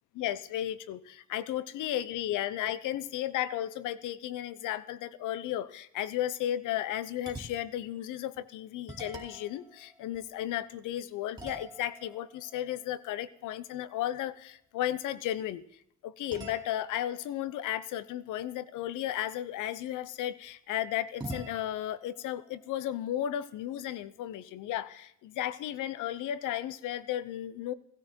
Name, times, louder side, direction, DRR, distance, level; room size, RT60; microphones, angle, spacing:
voice 1, 0.2-15.6 16.0-27.7, left 12 dB, 90° left, 17 dB, 0.9 m, -34 dB
sound 1, 7.2-7.9 8.3-8.4 8.8-10.8 11.4-14.0 16.3-19.0 21.2-23.8, right 1 dB, 15° right, 5.0 m, -48 dB
17.0 x 16.0 x 4.5 m, 0.72 s
cardioid pair, 90°, 30 cm